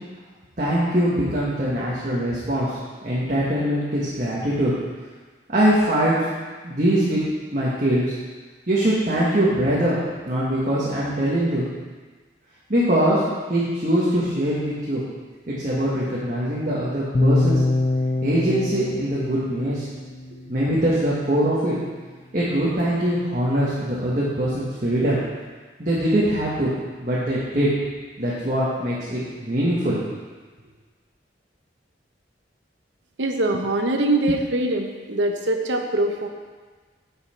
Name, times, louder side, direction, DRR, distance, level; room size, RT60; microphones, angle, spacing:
voice 1, 0.6-4.7 5.5-6.2 6.6-7.2 7.5-8.0 8.7-10.0 10.2-11.8 12.7-13.2 13.5-15.0 15.5-17.6 18.2-19.9 20.5-21.8 22.3-25.2 25.8-26.7 27.0-27.7 28.2-30.0, right 1 dB, 45° right, -8 dB, 1.5 m, -22 dB
sound 1, 17.1-21.2, left 2 dB, 30° left, 0.3 m, -25 dB
voice 2, 33.2-36.3, right 1 dB, 90° right, 4 dB, 0.9 m, -23 dB
9.8 x 5.7 x 4.4 m, 1.4 s
head